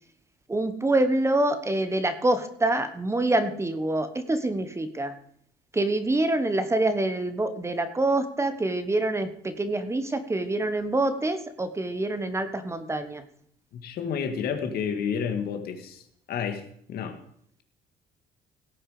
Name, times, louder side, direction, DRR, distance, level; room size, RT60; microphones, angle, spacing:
voice 1, 0.5-5.1 5.7-13.2, right 2 dB, 15° right, 9 dB, 1.2 m, -26 dB
voice 2, 13.7-16.0 16.3-16.6 16.9-17.2, left 7 dB, 65° left, 7 dB, 1.8 m, -30 dB
17.5 x 7.2 x 4.9 m, 0.67 s
cardioid pair, 110°, 17 cm